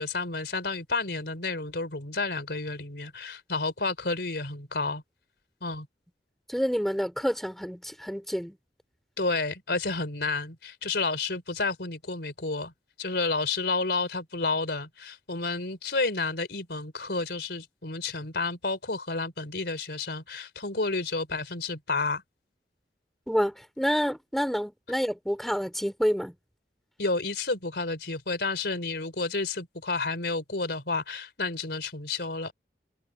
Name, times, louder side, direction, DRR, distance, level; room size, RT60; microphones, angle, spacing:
voice 1, 0.0-5.0 5.6-5.9 9.2-12.7 13.0-22.2 27.0-32.5, left 3 dB, 65° left, 4.3 m, -30 dB
voice 2, 6.5-8.6 23.3-26.3, equal, ahead, 4.3 m, -28 dB
head